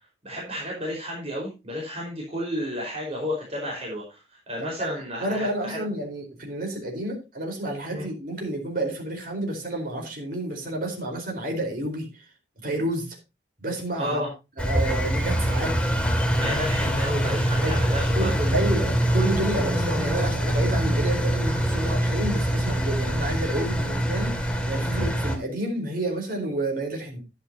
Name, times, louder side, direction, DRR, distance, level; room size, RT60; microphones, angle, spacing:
voice 1, 0.2-4.2 4.5-5.8 7.9-8.1 14.0-14.3 16.3-18.6, equal, 35° right, -2 dB, 4.8 m, -32 dB
voice 2, 5.2-12.1 12.6-13.2 13.6-14.2 14.6-15.8 17.6-17.8 18.1-27.2, right 1 dB, 55° right, 2 dB, 4.5 m, -30 dB
Engine, 14.6-25.4, equal, 5° left, 2.2 m, -24 dB
12.5 x 10.5 x 2.8 m, 0.26 s
head